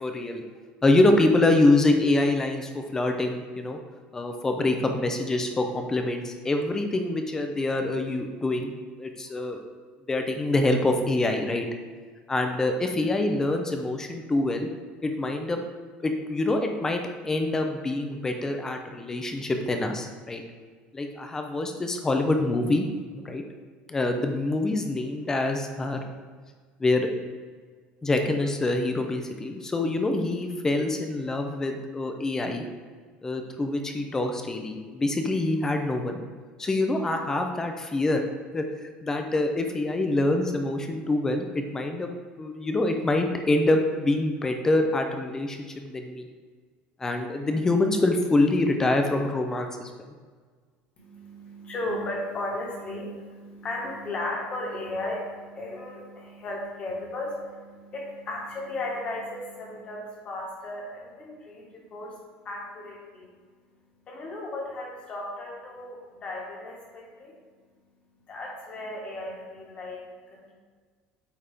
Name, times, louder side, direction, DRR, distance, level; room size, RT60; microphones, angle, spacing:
voice 1, 0.0-0.4 0.8-3.8 4.1-8.7 9.0-9.6 10.1-11.6 12.3-14.7 15.0-15.6 16.0-20.4 20.9-22.9 23.1-23.4 23.9-26.0 26.8-27.1 28.0-32.6 33.2-36.2 36.6-38.2 38.5-42.1 42.4-46.2 47.0-49.9, left 2 dB, 15° left, 4 dB, 0.6 m, -25 dB
voice 2, 51.0-70.5, left 2 dB, 30° left, -2 dB, 1.6 m, -36 dB
8.6 x 4.2 x 3.5 m, 1.5 s
cardioid pair, 165°, 4 cm